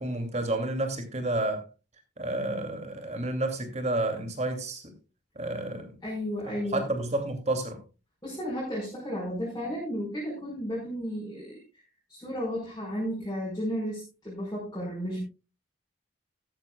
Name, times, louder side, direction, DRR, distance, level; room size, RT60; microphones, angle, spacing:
voice 1, 0.0-1.7 2.2-4.9 5.3-6.0 6.7-7.8, right 2 dB, 35° right, 2.7 m, -30 dB
voice 2, 6.0-6.8 8.2-11.6 12.1-15.2, equal, 20° left, 5.3 m, -33 dB
14.0 x 13.5 x 2.4 m
head